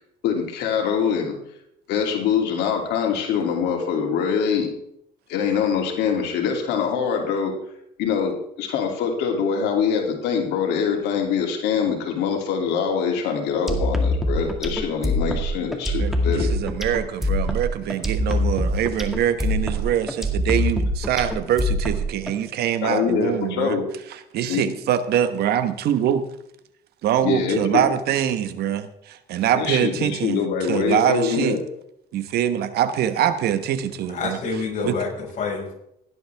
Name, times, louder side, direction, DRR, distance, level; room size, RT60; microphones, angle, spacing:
voice 1, 0.2-1.3 1.9-4.7 5.3-7.5 8.0-16.5 22.8-23.8 24.5-24.7 27.2-27.8 29.5-31.6, left 7 dB, 85° left, 2 dB, 2.8 m, -24 dB
sound 1, 13.7-22.3, left 1 dB, ahead, 2.0 m, -24 dB
voice 2, 16.0-23.7 24.3-26.2 27.0-30.4 30.7-31.6 32.1-34.4 34.8-34.9, right 10 dB, 70° right, 11 dB, 1.2 m, -24 dB
voice 3, 34.1-35.7, left 4 dB, 50° left, -1 dB, 5.5 m, -27 dB
16.5 x 11.0 x 3.5 m, 0.74 s
cardioid pair, 110°, 17 cm